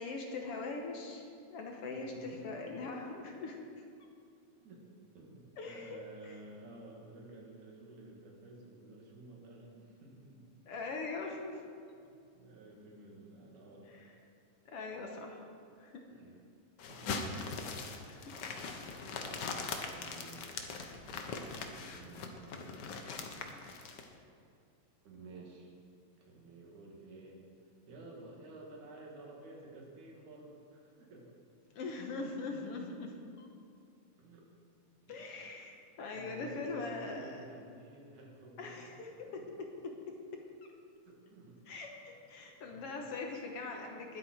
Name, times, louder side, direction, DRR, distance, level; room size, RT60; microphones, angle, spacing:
voice 1, 0.0-3.6 5.6-6.4 10.7-11.6 13.9-14.1 14.7-15.5 15.8-16.0 18.0-18.3 31.7-33.5 35.1-37.4 38.6-40.4 41.7-44.2, left 3 dB, 60° left, 1 dB, 1.9 m, -42 dB
voice 2, 1.9-2.8 4.6-4.8 5.1-10.5 12.0-13.9 16.1-16.4 16.8-17.1 18.4-20.6 21.6-23.0 25.0-25.7 26.2-27.4 27.9-31.3 34.2-34.5 35.0-35.2 36.1-38.9 39.3-39.5 41.1-41.6 42.1-42.2 42.7-43.0, right 2 dB, 85° right, -2 dB, 3.5 m, -52 dB
sound 1, 16.8-24.1, left 4 dB, 85° left, 0.9 m, -41 dB
20.5 x 8.2 x 4.7 m, 2.5 s
omnidirectional pair, 3.4 m